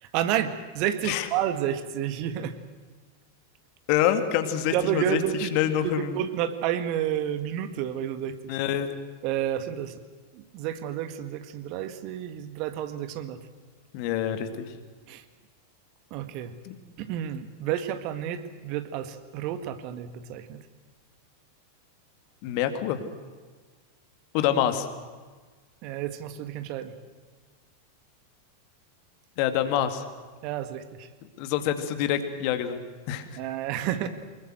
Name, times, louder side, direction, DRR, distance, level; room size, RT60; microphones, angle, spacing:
voice 1, 0.0-2.6 4.7-5.6 5.8-8.6 9.2-10.0 10.3-13.4 15.1-15.2 16.1-16.6 17.0-20.6 25.8-26.9 30.4-31.1 33.4-34.1, right 10 dB, 45° right, 10 dB, 1.8 m, -30 dB
voice 2, 3.9-6.2 8.5-8.9 13.9-14.7 16.7-16.8 22.4-23.0 24.3-24.9 29.4-30.0 31.4-32.8 33.1-33.3, left 10 dB, 45° left, 9 dB, 2.2 m, -26 dB
24.5 x 21.5 x 7.9 m, 1.4 s
figure-of-eight pair, 90°, 0 cm